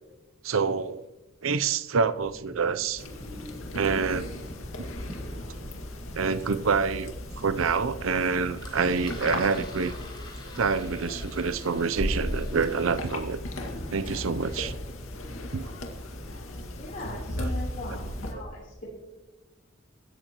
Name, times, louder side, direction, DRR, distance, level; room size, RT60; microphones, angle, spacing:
voice 1, 0.4-1.1 1.4-3.0 3.7-4.3 6.1-9.9 10.6-13.4 13.9-14.7 15.5-15.7 17.4-17.5, right 5 dB, 80° right, 13 dB, 0.6 m, -27 dB
sound 1, 2.2-17.7, equal, 35° right, 1.6 m, -50 dB
sound 2, 3.0-18.3, left 1 dB, 90° left, 2.1 m, -36 dB
Engine, 8.6-13.8, left 2 dB, 25° left, 4.6 m, -49 dB
voice 2, 16.8-18.9, left 2 dB, 40° left, -6 dB, 3.7 m, -40 dB
24.0 x 13.0 x 3.0 m, 1.1 s
head